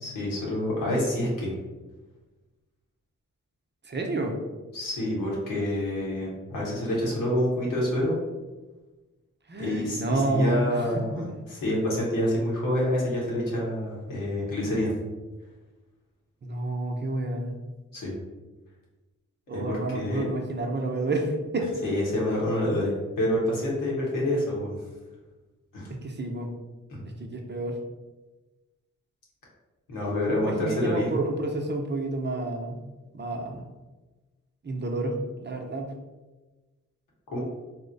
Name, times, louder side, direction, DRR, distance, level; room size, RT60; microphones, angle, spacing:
voice 1, 0.0-1.5 4.7-8.1 9.6-15.0 17.9-18.1 19.5-20.2 21.8-24.8 25.7-25.9 26.9-27.3 29.9-31.2 37.3-37.4, left 1 dB, 90° left, -5 dB, 1.1 m, -27 dB
voice 2, 3.8-4.4 9.5-11.3 16.4-17.6 19.5-21.7 25.9-26.5 27.1-27.8 30.3-32.9 33.1-33.7 34.6-35.9, right 2 dB, 35° right, 3 dB, 0.6 m, -29 dB
2.9 x 2.1 x 3.9 m, 1.2 s
supercardioid pair, 40°, 32 cm